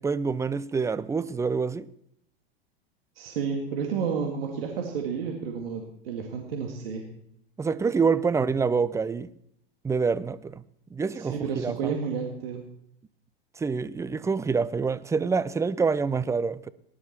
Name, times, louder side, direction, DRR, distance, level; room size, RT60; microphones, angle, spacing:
voice 1, 0.0-1.9 7.6-9.3 9.8-10.6 10.9-11.9 13.6-16.7, right 5 dB, 10° right, 0.5 m, -26 dB
voice 2, 3.2-7.1 11.2-12.6, right 6 dB, 70° right, 2.3 m, -31 dB
19.0 x 11.5 x 4.4 m
hypercardioid pair, 95°, 31 cm